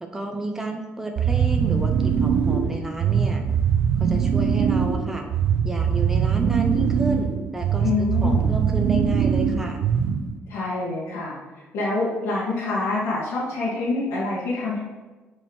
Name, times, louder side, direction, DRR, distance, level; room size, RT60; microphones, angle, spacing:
voice 1, 0.0-3.4 4.0-5.3 5.6-9.8, right 2 dB, 10° right, 2 dB, 0.8 m, -31 dB
sound 1, 1.2-10.4, right 7 dB, 65° right, 0.6 m, -22 dB
voice 2, 7.8-8.5 10.5-11.3 11.7-14.8, left 3 dB, 85° left, -8 dB, 1.9 m, -26 dB
7.0 x 4.5 x 6.2 m, 1.2 s
cardioid pair, 110°, 4 cm